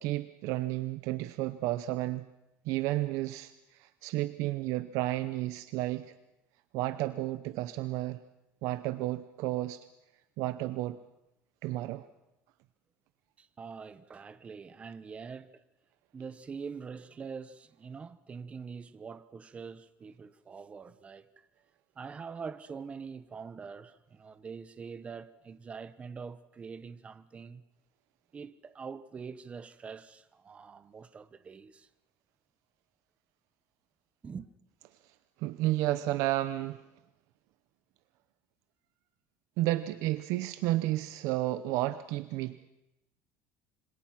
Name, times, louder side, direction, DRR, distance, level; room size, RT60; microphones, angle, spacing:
voice 1, 0.0-2.3 2.6-6.1 6.7-8.2 8.6-9.8 10.4-11.0 11.6-12.1 35.4-36.8 39.6-42.7, right 16 dB, 70° right, 0.8 m, -32 dB
voice 2, 13.4-15.6 16.1-21.5 22.0-27.6 28.3-31.9 34.2-34.5, right 5 dB, 20° right, 1.0 m, -44 dB
26.0 x 25.0 x 6.0 m
cardioid pair, 150°, 6 cm